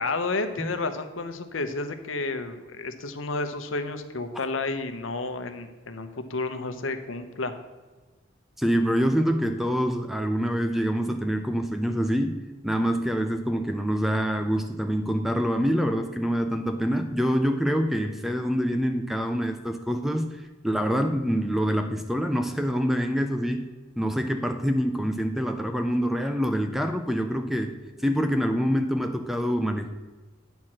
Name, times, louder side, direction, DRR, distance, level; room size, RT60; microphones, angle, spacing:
voice 1, 0.0-7.5, left 3 dB, 80° left, 9 dB, 0.9 m, -31 dB
voice 2, 8.6-23.7 24.0-29.9, equal, ahead, 7 dB, 0.4 m, -26 dB
9.2 x 4.6 x 7.3 m, 1.3 s
head